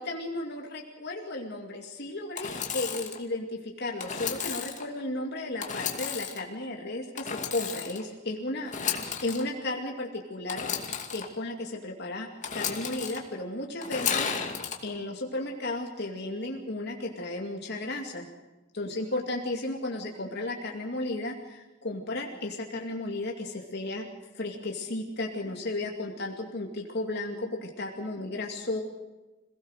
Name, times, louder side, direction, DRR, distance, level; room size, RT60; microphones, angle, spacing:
voice 1, 0.0-10.7 11.1-14.3 14.8-18.3 18.7-24.1 24.3-28.8, left 2 dB, 55° left, 1 dB, 2.5 m, -34 dB
Engine / Sawing, 2.3-3.2 4.0-4.8 5.6-6.4 7.2-8.0 8.6-9.4 10.5-11.2 12.4-13.2 13.8-14.8, left 7 dB, 40° left, 2.5 m, -33 dB
27.0 x 18.0 x 6.6 m, 1.1 s
head